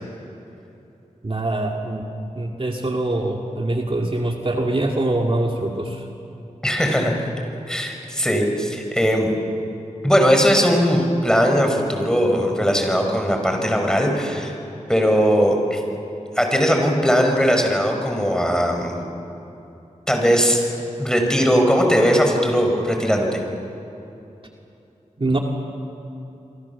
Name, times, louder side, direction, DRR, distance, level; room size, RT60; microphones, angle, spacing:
voice 1, 1.2-2.0 2.4-6.1 25.2-25.4, right 2 dB, 40° right, 1 dB, 2.4 m, -23 dB
voice 2, 6.6-7.1 7.7-9.3 10.0-14.5 14.9-15.8 16.4-19.0 20.1-20.6 21.0-23.4, equal, 5° left, 2 dB, 5.7 m, -19 dB
28.0 x 23.5 x 7.2 m, 2.9 s
cardioid pair, 45°, 13 cm